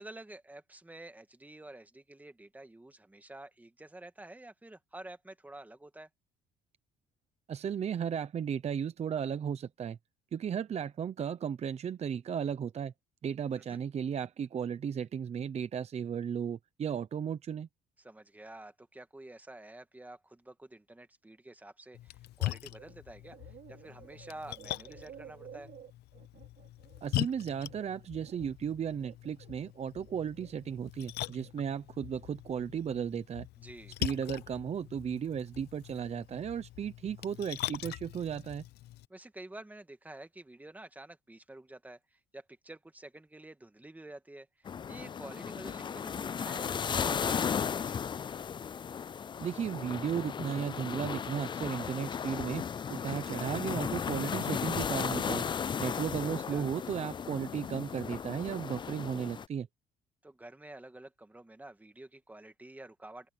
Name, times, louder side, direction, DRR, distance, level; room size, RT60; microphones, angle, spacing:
voice 1, 0.0-6.1 13.6-13.8 18.0-25.7 33.6-34.0 39.1-48.0 56.5-56.7 60.2-63.3, right 2 dB, 10° right, 2.2 m, -49 dB
voice 2, 7.5-10.0 10.3-12.9 13.2-17.7 27.0-33.5 34.0-38.6 49.4-52.6 52.9-55.5 55.8-59.7, right 8 dB, 40° right, 0.9 m, -35 dB
Splash splatter, 21.9-39.0, left 16 dB, 75° left, 0.7 m, -42 dB
sound 1, 22.6-23.0 23.2-28.6 29.0-30.7 31.1-31.5, right 10 dB, 55° right, 4.6 m, -54 dB
sound 2, 44.7-59.5, left 7 dB, 30° left, 0.4 m, -35 dB
open air
cardioid pair, 110°, 17 cm